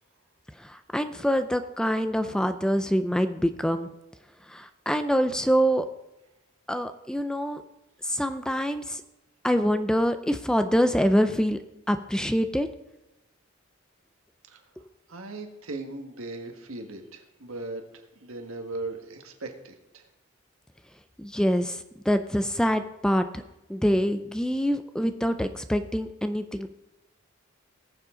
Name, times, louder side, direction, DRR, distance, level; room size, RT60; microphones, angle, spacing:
voice 1, 0.6-3.9 4.5-5.9 6.7-7.6 8.0-9.0 9.4-11.6 11.9-12.7 14.8-14.9 21.2-23.4 23.7-26.7, equal, 5° left, 9 dB, 0.4 m, -25 dB
voice 2, 15.1-20.1, right 2 dB, 85° right, 4 dB, 1.6 m, -38 dB
19.5 x 7.3 x 3.8 m, 0.96 s
head